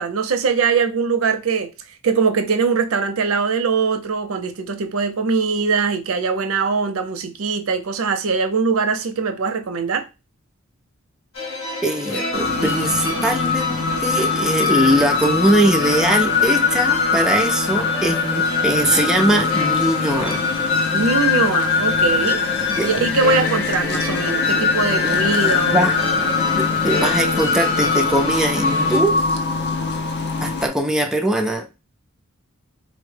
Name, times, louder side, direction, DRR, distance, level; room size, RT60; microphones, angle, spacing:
voice 1, 0.0-1.7 2.0-10.1 20.9-22.4 22.8-25.9, right 5 dB, 85° right, 0.5 m, -21 dB
sound 1, 11.3-29.0, left 1 dB, 80° left, 1.0 m, -29 dB
voice 2, 11.8-20.4 22.8-22.9 25.0-25.9 26.6-29.2 30.4-31.7, right 1 dB, 5° right, 0.3 m, -21 dB
sound 2, 12.3-30.7, left 5 dB, 55° left, 0.5 m, -21 dB
4.0 x 2.1 x 3.2 m
head